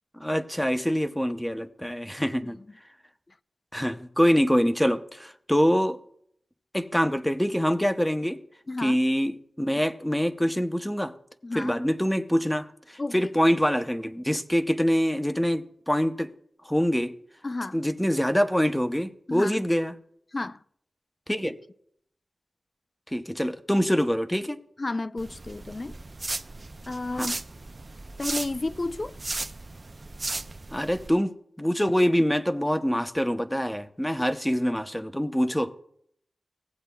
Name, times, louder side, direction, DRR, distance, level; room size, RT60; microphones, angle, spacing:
voice 1, 0.2-2.6 3.7-6.0 6.7-8.4 8.8-11.1 11.5-16.3 16.6-17.2 17.7-19.9 21.3-21.5 23.1-24.6 27.2-27.3 30.7-35.8, equal, 5° left, 0.6 m, -25 dB
voice 2, 2.2-2.5 8.7-9.0 11.4-11.7 13.0-13.3 17.4-17.8 19.3-19.6 20.3-20.6 21.4-21.6 24.8-26.0 26.9-27.4 28.2-29.2, left 2 dB, 40° left, 0.3 m, -32 dB
sound 1, 25.2-31.1, right 2 dB, 40° right, 0.3 m, -36 dB
17.0 x 8.1 x 2.2 m
cardioid pair, 55°, 0 cm